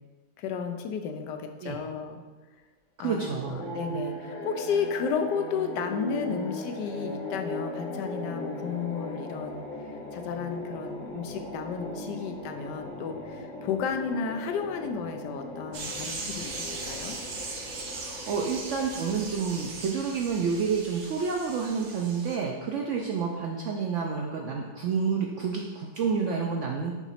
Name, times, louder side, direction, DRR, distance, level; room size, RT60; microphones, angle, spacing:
voice 1, 0.4-2.2 3.0-17.2, left 6 dB, 90° left, 6 dB, 1.2 m, -33 dB
voice 2, 3.0-3.6 3.9-4.0 17.9-26.9, right 5 dB, 70° right, 0 dB, 0.7 m, -29 dB
sound 1, 3.3-19.8, left 2 dB, 35° left, 0.8 m, -38 dB
sound 2, 15.7-22.4, right 3 dB, 90° right, 1.5 m, -39 dB
6.0 x 3.0 x 5.6 m, 1.3 s
omnidirectional pair, 1.8 m